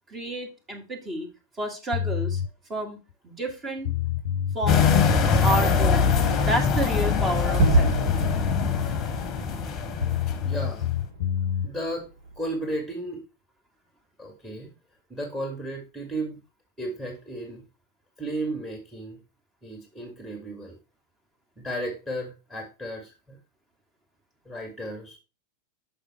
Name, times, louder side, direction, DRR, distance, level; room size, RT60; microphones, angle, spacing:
voice 1, 0.1-1.3 1.6-2.4 2.7-3.0 3.2-3.9 4.5-4.9 5.4-6.1 6.5-8.1, right 1 dB, 20° right, 2 dB, 2.3 m, -30 dB
sound 1, 1.9-2.5 3.5-3.6 3.8-5.5 7.7-7.8 8.1-9.3 10.0-11.7, left 9 dB, 60° left, 0.6 m, -28 dB
sound 2, 4.7-10.9, left 5 dB, 25° left, 1.1 m, -23 dB
Gunshot gunfire / Fireworks / Boom, 7.6-12.4, right 3 dB, 60° right, 2.4 m, -28 dB
voice 2, 10.2-10.9 11.6-12.1 12.4-13.2 14.2-14.7 15.1-16.4 16.8-17.6 18.2-19.2 19.6-20.8 21.6-23.4 24.5-25.2, right 1 dB, 5° right, 3 dB, 2.1 m, -34 dB
6.6 x 5.7 x 4.3 m, 0.30 s
figure-of-eight pair, 90°, 0 cm